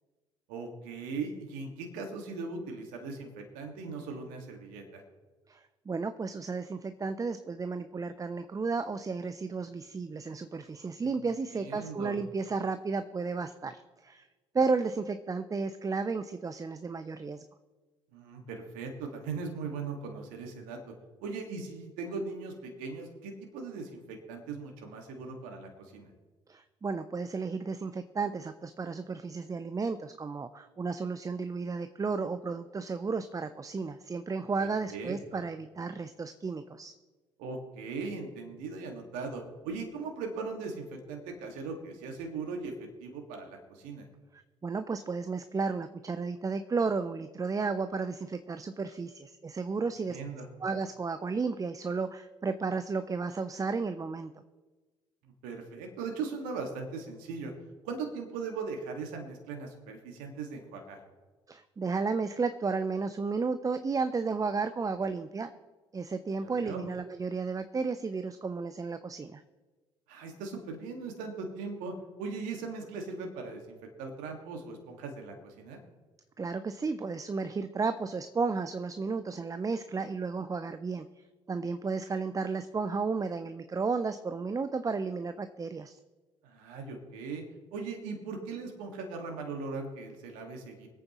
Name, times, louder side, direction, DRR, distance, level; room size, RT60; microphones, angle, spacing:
voice 1, 0.5-5.0 11.0-11.2 11.5-12.1 18.1-20.9 21.2-26.1 34.6-35.4 37.4-44.1 50.1-50.5 55.2-57.5 57.8-61.0 66.4-66.8 70.1-75.8 86.4-87.4 87.7-90.9, right 4 dB, 70° right, 3 dB, 1.9 m, -39 dB
voice 2, 5.5-14.3 14.5-17.4 26.5-36.9 44.6-50.2 50.6-54.3 61.5-65.5 65.9-69.4 76.4-81.1 81.5-86.0, right 4 dB, 25° right, 11 dB, 0.6 m, -33 dB
24.0 x 8.7 x 3.1 m, 1.3 s
hypercardioid pair, 55°, 15 cm